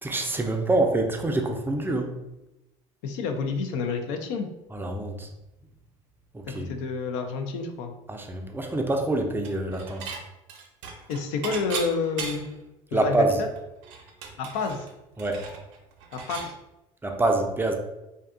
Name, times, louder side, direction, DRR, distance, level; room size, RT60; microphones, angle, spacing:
voice 1, 0.0-2.1 4.7-5.3 6.3-6.7 8.1-10.1 12.9-13.4 15.2-15.4 17.0-17.7, right 2 dB, 15° right, 3 dB, 0.4 m, -26 dB
voice 2, 3.0-4.5 6.7-7.9 11.1-12.5 12.9-13.2 14.4-14.9 16.1-16.5, left 4 dB, 80° left, 5 dB, 0.4 m, -29 dB
Dishes pots and pans / Chink clink, 9.4-10.2 10.5-12.6 13.0-13.1 13.4-16.5, right 5 dB, 80° right, 0.5 m, -37 dB
2.6 x 2.3 x 2.4 m, 0.93 s
supercardioid pair, 90°, 16 cm